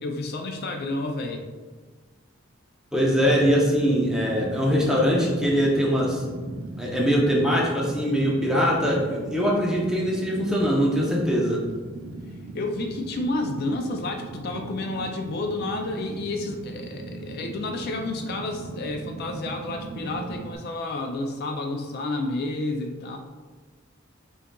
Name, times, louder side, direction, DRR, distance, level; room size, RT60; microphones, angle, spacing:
voice 1, 0.0-1.4 12.5-23.2, left 2 dB, 50° left, 4 dB, 0.3 m, -30 dB
voice 2, 2.9-6.2 6.8-11.6, equal, 5° right, -3 dB, 0.6 m, -22 dB
Fire, 3.1-20.6, right 2 dB, 80° right, 0.4 m, -38 dB
6.4 x 2.4 x 2.2 m, 1.4 s
head